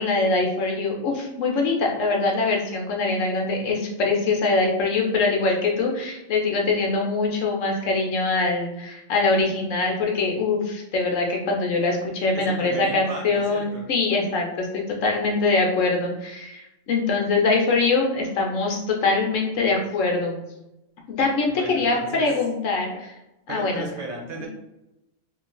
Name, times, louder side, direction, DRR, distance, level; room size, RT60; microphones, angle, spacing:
voice 1, 0.0-20.4 21.1-23.1 23.5-23.9 24.4-24.5, left 3 dB, 70° left, 0 dB, 1.0 m, -23 dB
voice 2, 12.3-13.8 21.5-22.3 23.5-24.5, right 2 dB, 60° right, 0 dB, 1.0 m, -35 dB
2.7 x 2.5 x 3.9 m, 0.94 s
omnidirectional pair, 1.4 m